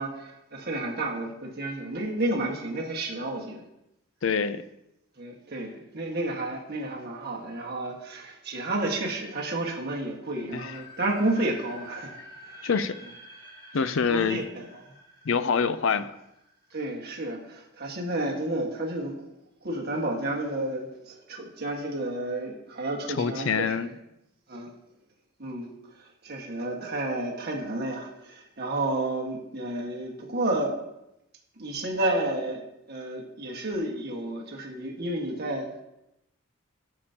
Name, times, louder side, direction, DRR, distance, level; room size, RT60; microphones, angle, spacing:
voice 1, 0.0-3.6 5.2-12.2 12.4-12.7 13.8-14.7 16.7-19.2 19.6-23.9 24.5-24.7 25.4-30.7 31.6-32.6 32.9-35.7, right 2 dB, 45° right, -1 dB, 1.5 m, -31 dB
voice 2, 4.2-4.6 10.5-10.7 12.6-13.0 13.7-14.4 15.3-16.1 23.1-23.9, left 6 dB, 60° left, 13 dB, 0.5 m, -25 dB
sound 1, 10.2-17.1, left 1 dB, 20° left, 1.9 m, -48 dB
13.5 x 7.0 x 2.8 m, 0.87 s
head